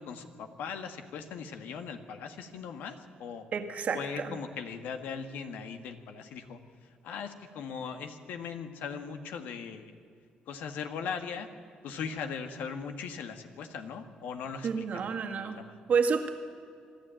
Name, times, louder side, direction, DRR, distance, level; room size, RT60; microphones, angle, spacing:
voice 1, 0.0-3.5 3.9-9.9 10.5-11.5 11.8-15.7, left 6 dB, 80° left, 7 dB, 1.7 m, -39 dB
voice 2, 3.5-4.4 14.6-15.6 15.9-16.3, right 5 dB, 55° right, 5 dB, 2.0 m, -29 dB
25.0 x 12.0 x 9.0 m, 2.3 s
cardioid pair, 85°, 3 cm